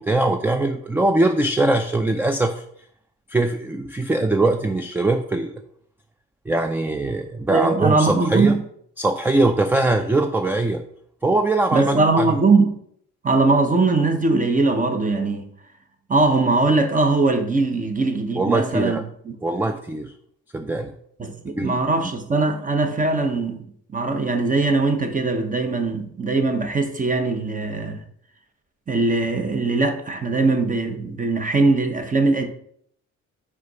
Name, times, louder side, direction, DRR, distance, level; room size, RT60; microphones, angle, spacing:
voice 1, 0.0-2.6 3.3-5.6 6.5-8.5 9.0-10.8 11.2-12.4 18.4-19.0 19.4-20.1 20.5-20.9 21.6-21.8, right 2 dB, 5° right, 0.3 m, -21 dB
voice 2, 7.5-8.6 11.7-12.8 13.2-15.5 16.1-19.3 21.2-28.0 28.9-32.5, right 3 dB, 25° right, 0.9 m, -21 dB
4.9 x 4.8 x 4.0 m
cardioid pair, 90°, 30 cm